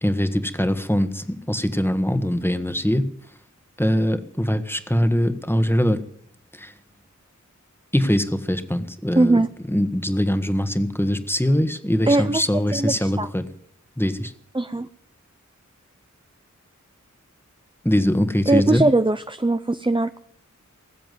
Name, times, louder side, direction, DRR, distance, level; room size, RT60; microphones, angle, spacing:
voice 1, 0.0-3.1 3.8-6.0 6.6-6.7 7.9-9.4 9.7-13.4 14.0-14.3 17.8-18.8, equal, 5° left, 9 dB, 1.6 m, -22 dB
voice 2, 9.2-9.5 12.1-13.3 14.5-14.9 18.5-20.2, right 2 dB, 15° right, 11 dB, 0.6 m, -20 dB
19.5 x 7.7 x 9.4 m, 0.64 s
wide cardioid pair, 45°, 30 cm